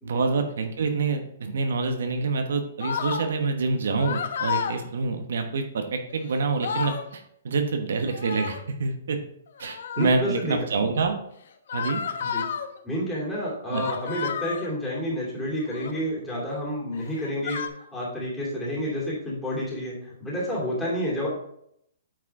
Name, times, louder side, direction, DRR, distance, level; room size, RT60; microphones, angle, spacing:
voice 1, 0.0-9.2 9.6-11.2 11.7-12.0 13.7-13.8, right 4 dB, 75° right, 5 dB, 1.1 m, -27 dB
sound 1, 2.8-3.3 3.9-4.8 6.1-6.2 6.4-7.0 8.1-8.7 9.6-10.2 11.7-12.7 13.7-14.7 15.6-16.0 16.9-17.7, left 7 dB, 65° left, 0.9 m, -31 dB
voice 2, 10.0-10.6 12.2-12.5 12.8-17.6 17.9-21.3, equal, 5° left, -7 dB, 2.8 m, -29 dB
9.0 x 4.9 x 3.7 m, 0.72 s
hypercardioid pair, 165°, 0 cm